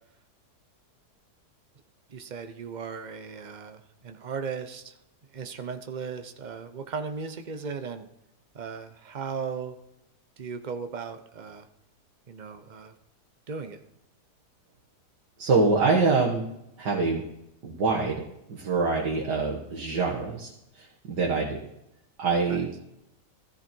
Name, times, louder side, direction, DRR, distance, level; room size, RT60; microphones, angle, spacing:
voice 1, 2.1-5.0 5.3-8.1 8.5-9.8 10.4-11.7 12.3-12.9 13.5-13.8 22.5-22.7, right 5 dB, 35° right, 8 dB, 0.8 m, -37 dB
voice 2, 15.4-16.4 16.8-17.2 17.6-18.2 18.5-20.5 20.8-21.6 22.2-22.7, right 4 dB, 75° right, -3 dB, 2.3 m, -25 dB
14.0 x 14.0 x 4.5 m, 0.84 s
omnidirectional pair, 1.8 m